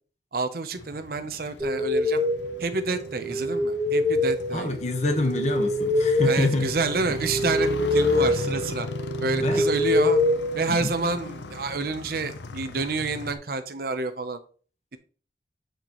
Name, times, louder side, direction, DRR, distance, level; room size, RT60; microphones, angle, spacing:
voice 1, 0.3-2.2 2.6-4.7 6.2-8.9 9.2-10.2 10.5-14.4, right 3 dB, 50° right, 0.7 m, -29 dB
Motorcycle, 0.8-13.4, left 2 dB, 70° left, 0.7 m, -37 dB
sound 1, 1.6-11.3, left 1 dB, 15° right, 1.0 m, -25 dB
voice 2, 4.5-6.7 9.4-9.6 10.7-10.9, left 2 dB, 40° left, 1.2 m, -26 dB
7.9 x 6.6 x 3.0 m
head